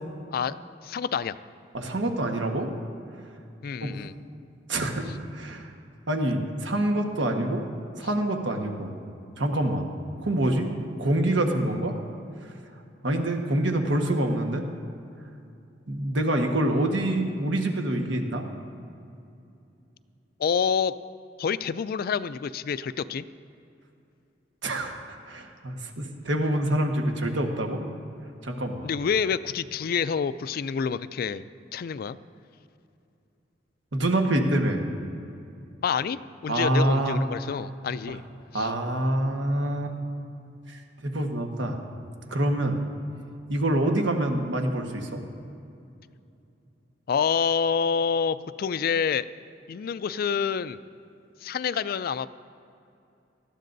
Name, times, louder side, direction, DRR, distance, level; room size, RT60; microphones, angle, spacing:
voice 1, 0.8-1.4 3.6-4.1 20.4-20.9 21.4-23.3 28.8-31.5 31.7-32.2 35.8-38.2 38.5-38.7 47.1-49.3 49.7-50.8 51.4-52.3, left 6 dB, 55° left, 15 dB, 0.3 m, -27 dB
voice 2, 1.7-2.7 3.8-4.0 4.7-5.7 6.1-7.6 8.0-8.9 9.4-9.9 10.2-10.7 11.0-12.0 13.0-14.6 15.9-18.4 24.6-27.8 28.4-28.9 33.9-34.9 36.5-37.2 38.1-38.2 38.5-39.9 40.7-41.8 42.3-42.8 43.5-45.2, right 1 dB, 75° right, 3 dB, 1.4 m, -26 dB
19.0 x 13.0 x 2.6 m, 2.6 s
head